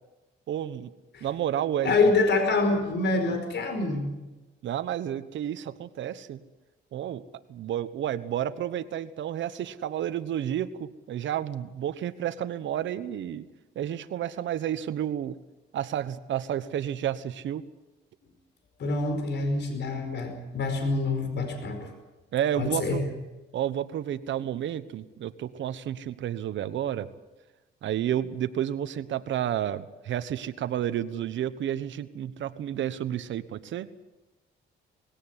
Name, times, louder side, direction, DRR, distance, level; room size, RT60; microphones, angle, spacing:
voice 1, 0.5-0.9 1.2-1.9 4.6-6.4 6.9-7.2 7.5-13.5 13.7-15.3 15.7-17.6 22.3-23.0 23.5-27.1 27.8-33.9, right 10 dB, 70° right, 12 dB, 1.2 m, -31 dB
voice 2, 1.8-4.1 18.8-21.9 22.6-23.0, left 3 dB, 60° left, 6 dB, 5.0 m, -26 dB
19.5 x 17.0 x 9.7 m, 1.1 s
cardioid pair, 90°, 20 cm